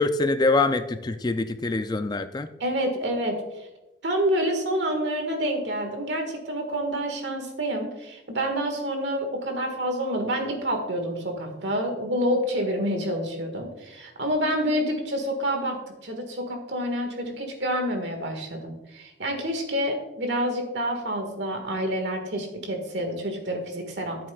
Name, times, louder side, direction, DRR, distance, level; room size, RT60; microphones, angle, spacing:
voice 1, 0.0-2.5, left 3 dB, 25° left, 10 dB, 0.4 m, -24 dB
voice 2, 2.6-3.7 4.0-24.3, equal, 70° right, 4 dB, 1.7 m, -28 dB
13.5 x 7.6 x 2.4 m, 0.97 s
head